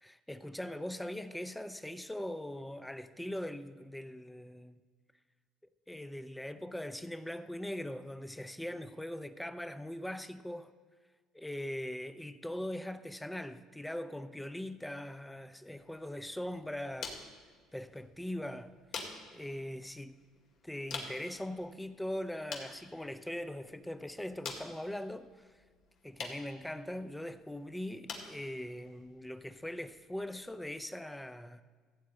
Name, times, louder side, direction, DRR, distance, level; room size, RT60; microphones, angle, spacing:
voice 1, 0.0-4.8 5.9-10.7 11.3-17.2 17.7-18.7 19.3-20.2 20.6-25.5 26.0-31.6, left 1 dB, 5° left, 0.5 m, -41 dB
sound 1, 15.8-30.8, left 4 dB, 60° left, 2.0 m, -49 dB
14.5 x 8.7 x 4.3 m
cardioid pair, 115°, 0 cm